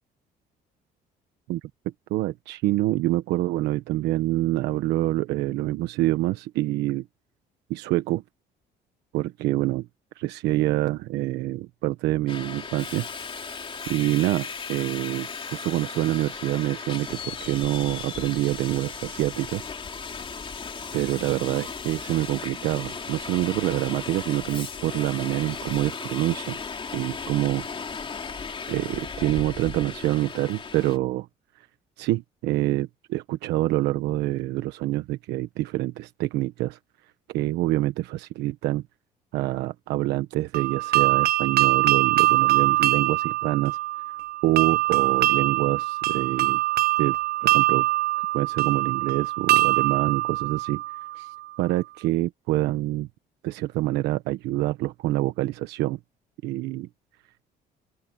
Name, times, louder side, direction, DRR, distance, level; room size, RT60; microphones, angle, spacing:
voice 1, 2.1-7.0 7.7-8.2 9.1-9.9 10.2-13.1 13.9-19.6 20.9-26.6 26.9-27.6 28.7-31.3 32.0-36.8 37.3-38.8 39.3-43.8 44.4-46.6 47.0-47.9 48.3-50.8 51.2-51.3 51.6-53.1 53.4-56.0 56.4-56.9, right 16 dB, 90° right, 1.2 m, -26 dB
Subway metro underground, 12.3-31.0, left 5 dB, 30° left, 3.0 m, -36 dB
sound 1, 40.5-51.4, right 16 dB, 65° right, 1.1 m, -23 dB
open air
cardioid pair, 110°, 17 cm